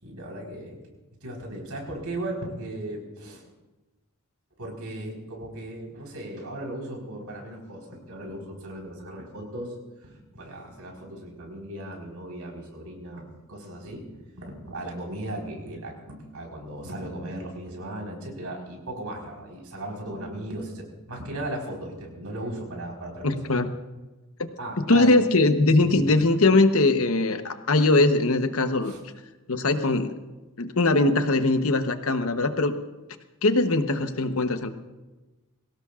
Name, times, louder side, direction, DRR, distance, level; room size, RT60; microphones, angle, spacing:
voice 1, 0.0-0.8 1.2-3.4 4.6-9.7 10.0-14.0 14.3-23.4 24.6-25.2 25.8-26.1 28.8-29.0, right 1 dB, 85° right, 0 dB, 4.5 m, -37 dB
voice 2, 23.2-23.7 24.4-24.5 24.8-28.9 29.5-30.2 30.6-32.8 33.4-34.7, left 2 dB, 70° left, 8 dB, 1.1 m, -21 dB
23.0 x 17.5 x 2.5 m, 1.1 s
head